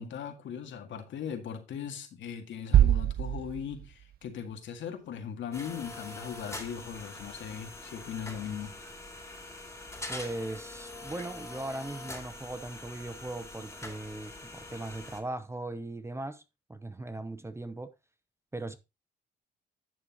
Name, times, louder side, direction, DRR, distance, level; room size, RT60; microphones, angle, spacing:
voice 1, 0.0-8.7, left 7 dB, 70° left, 2.0 m, -39 dB
sound 1, 2.7-4.5, right 12 dB, 50° right, 0.4 m, -25 dB
sound 2, 5.5-15.2, left 2 dB, 15° left, 2.7 m, -44 dB
voice 2, 10.1-16.4 16.7-17.9 18.5-18.8, right 2 dB, 15° right, 0.8 m, -39 dB
11.0 x 6.9 x 3.0 m
cardioid pair, 90°, 20 cm